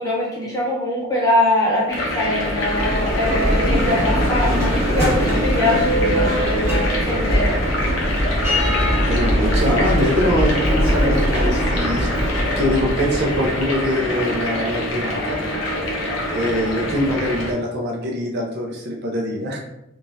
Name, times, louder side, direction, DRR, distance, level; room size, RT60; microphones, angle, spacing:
voice 1, 0.0-7.6, left 1 dB, 15° left, -4 dB, 1.0 m, -22 dB
sound 1, 1.9-17.5, left 1 dB, 75° left, 0.9 m, -26 dB
Bell, 2.3-14.1, equal, 15° right, 1.2 m, -21 dB
voice 2, 8.9-15.4 16.3-19.6, equal, 55° right, -1 dB, 0.7 m, -23 dB
3.5 x 3.1 x 2.7 m, 0.86 s
head